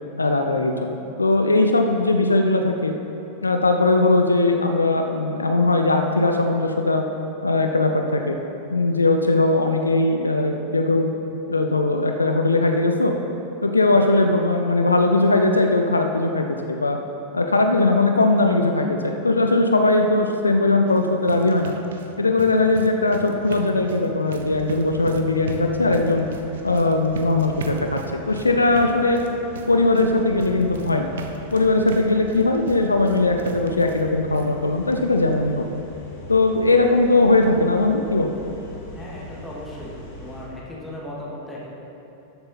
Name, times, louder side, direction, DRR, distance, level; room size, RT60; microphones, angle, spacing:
voice 1, 0.2-2.9 3.4-7.0 7.4-8.4 8.7-11.1 11.5-13.1 13.6-17.0 17.3-21.7 22.2-26.3 26.6-28.0 28.3-29.2 29.7-31.1 31.5-35.6 36.3-38.3, left 2 dB, 80° left, 4 dB, 0.6 m, -19 dB
sound 1, 20.8-34.1 34.3-34.5 34.9-35.0 35.3-35.4, right 4 dB, 65° right, 0.8 m, -39 dB
sound 2, 24.3-40.5, left 1 dB, 50° left, 2.3 m, -41 dB
voice 2, 38.9-41.7, left 1 dB, 5° left, -6 dB, 2.5 m, -37 dB
13.0 x 7.7 x 4.1 m, 2.9 s
figure-of-eight pair, 90°, 0 cm